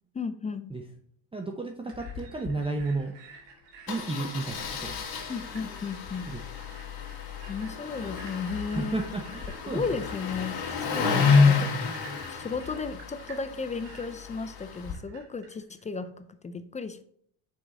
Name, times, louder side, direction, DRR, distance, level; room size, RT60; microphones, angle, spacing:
voice 1, 0.1-0.7 5.3-6.3 7.5-9.0 9.6-11.7 12.0-17.0, left 5 dB, 20° left, 11 dB, 0.4 m, -35 dB
voice 2, 1.3-3.1 3.9-5.0 6.3-6.4 8.7-10.0 11.0-11.3, right 3 dB, 15° right, 3 dB, 0.7 m, -33 dB
sound 1, 1.8-15.8, right 5 dB, 85° right, 1.9 m, -52 dB
Engine starting, 1.9-2.2 2.4-2.5 2.8-3.0 3.9-14.9, left 5 dB, 55° left, 1.8 m, -29 dB
6.3 x 4.6 x 4.0 m, 0.65 s
supercardioid pair, 100°, 43 cm